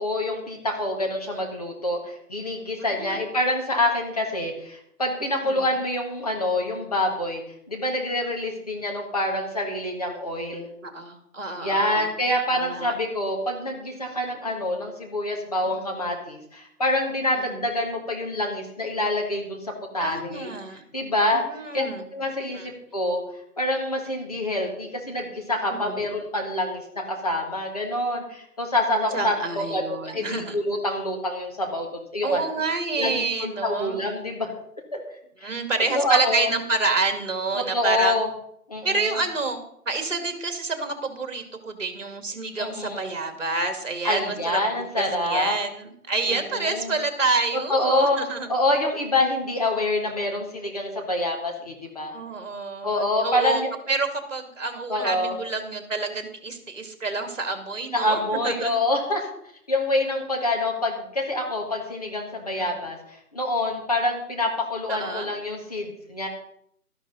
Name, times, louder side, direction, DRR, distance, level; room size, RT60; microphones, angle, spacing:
voice 1, 0.0-7.4 7.7-10.7 11.6-20.5 20.9-21.4 21.7-21.9 22.1-23.2 23.6-32.4 33.0-34.5 34.9-35.0 35.4-35.5 35.9-36.5 37.5-38.3 38.7-39.2 42.6-43.1 44.0-45.6 46.3-46.9 47.5-48.2 48.5-52.1 52.8-53.7 54.9-55.4 57.9-59.2 59.7-66.3, left 1 dB, 25° left, 1 dB, 1.6 m, -26 dB
voice 2, 2.8-3.2 5.5-5.7 10.8-12.1 12.5-12.9 15.6-16.0 17.5-17.7 20.0-20.8 21.3-22.1 22.5-22.7 25.8-26.0 29.1-30.6 32.2-34.0 35.4-38.2 38.8-39.6 39.9-44.6 45.0-48.5 52.1-53.6 53.9-58.8 62.6-62.8 64.9-65.3, right 3 dB, 55° right, 7 dB, 2.2 m, -28 dB
12.5 x 11.5 x 4.0 m, 0.70 s
figure-of-eight pair, 165°, 45 cm